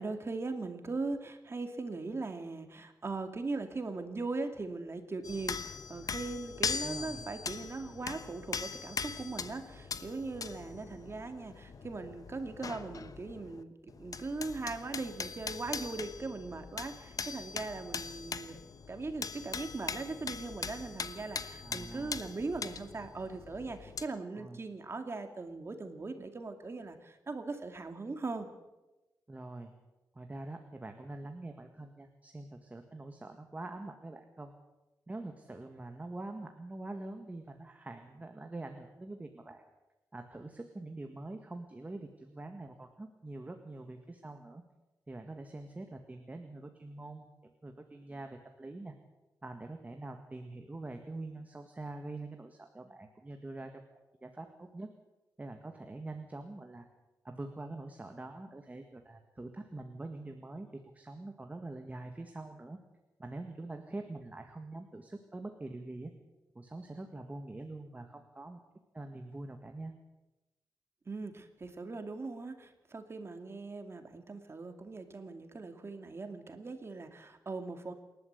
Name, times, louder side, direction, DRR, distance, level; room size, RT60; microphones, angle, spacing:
voice 1, 0.0-18.6 18.9-28.5 71.1-77.9, right 3 dB, 35° right, 6 dB, 2.3 m, -40 dB
sound 1, 5.2-13.6 13.9-24.1, left 5 dB, 55° left, 1.1 m, -41 dB
voice 2, 6.8-7.3 21.6-22.2 24.4-24.6 29.3-29.7 30.1-34.5 35.1-39.6 40.1-44.6 45.1-48.9 49.4-54.9 55.4-56.9 57.2-62.8 63.2-66.1 66.5-68.6 68.9-69.9, right 2 dB, 20° right, 5 dB, 1.8 m, -45 dB
27.5 x 12.0 x 8.1 m, 1.0 s
wide cardioid pair, 120°, 7 cm